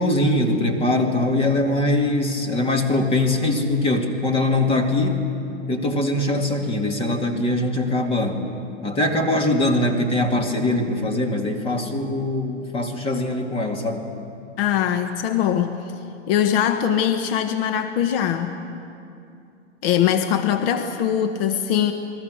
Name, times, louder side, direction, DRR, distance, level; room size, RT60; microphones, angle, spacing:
voice 1, 0.0-5.2 5.7-8.4 8.8-14.1, left 1 dB, 15° left, 2 dB, 2.3 m, -22 dB
voice 2, 14.6-15.9 16.3-18.6 19.8-21.9, left 9 dB, 50° left, 7 dB, 1.5 m, -21 dB
29.5 x 21.0 x 6.5 m, 2.5 s
hypercardioid pair, 140°, 37 cm